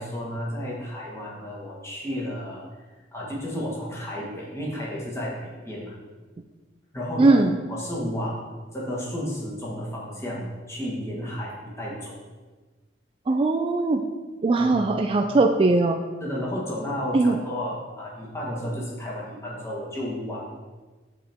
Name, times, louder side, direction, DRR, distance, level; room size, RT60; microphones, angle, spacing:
voice 1, 0.0-2.6 3.1-5.9 6.9-7.4 7.7-8.4 8.7-12.2 14.6-14.9 15.2-15.3 16.2-20.4, equal, 15° left, -5 dB, 1.4 m, -32 dB
voice 2, 7.2-7.6 13.3-14.0 14.4-16.0 17.1-17.4, right 2 dB, 30° right, 3 dB, 0.3 m, -20 dB
8.7 x 4.3 x 3.5 m, 1.3 s
head